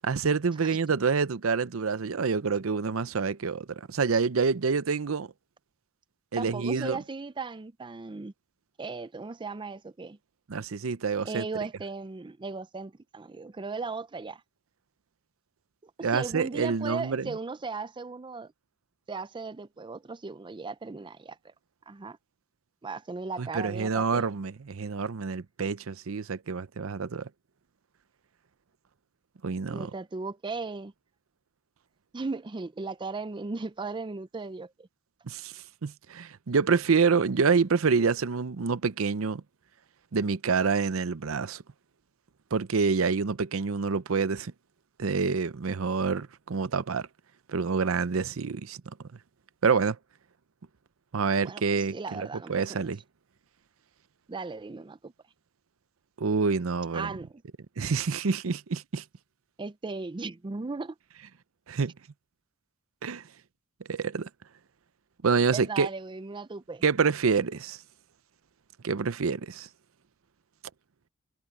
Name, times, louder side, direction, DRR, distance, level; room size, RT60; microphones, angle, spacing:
voice 1, 0.0-5.3 6.3-7.0 10.5-11.5 16.0-17.3 23.4-27.3 29.4-29.9 35.3-35.5 35.8-39.4 40.1-41.6 42.5-44.5 45.0-47.1 47.5-48.8 49.6-50.0 51.1-53.0 56.2-57.1 57.8-59.0 61.7-61.9 63.0-63.2 63.9-64.3 65.2-65.9 66.8-67.8 68.8-69.7, right 5 dB, 80° right, 0.6 m, -27 dB
voice 2, 6.4-8.3 8.8-10.2 11.2-14.4 15.8-18.5 19.1-21.5 21.9-22.2 22.8-24.3 29.7-30.9 32.1-34.9 38.0-38.1 51.4-52.9 54.3-55.1 56.9-57.4 59.6-61.0 65.5-66.8, right 4 dB, 25° right, 0.4 m, -37 dB
head